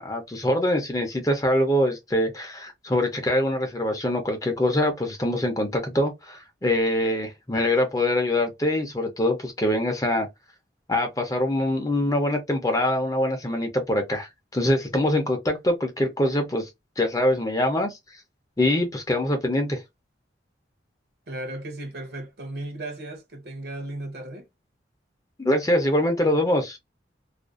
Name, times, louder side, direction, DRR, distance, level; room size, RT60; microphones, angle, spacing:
voice 1, 0.0-10.3 10.9-16.7 17.0-18.0 18.6-19.8 25.4-26.8, left 1 dB, 20° left, 0.5 m, -24 dB
voice 2, 21.3-24.5, right 1 dB, 55° right, 0.7 m, -35 dB
2.4 x 2.2 x 2.4 m
head